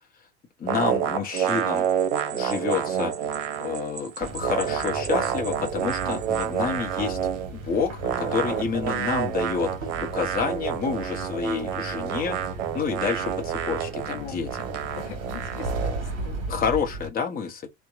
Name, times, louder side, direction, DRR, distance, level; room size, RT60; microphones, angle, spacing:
voice 1, 0.6-1.9 2.3-3.1 3.6-7.2 7.6-12.4 12.7-14.5 16.5-17.7, left 6 dB, 25° left, 0.8 m, -29 dB
sound 1, 0.7-4.0 4.2-7.5 8.0-16.0, right 9 dB, 60° right, 0.7 m, -28 dB
sound 2, 1.4-6.6, right 7 dB, 20° right, 0.5 m, -43 dB
sound 3, 4.2-17.1, right 1 dB, 45° right, 1.0 m, -36 dB
voice 2, 8.0-8.7 14.1-14.4 15.0-16.5, left 11 dB, 75° left, 0.8 m, -41 dB
2.7 x 2.2 x 2.3 m
hypercardioid pair, 80°, 35 cm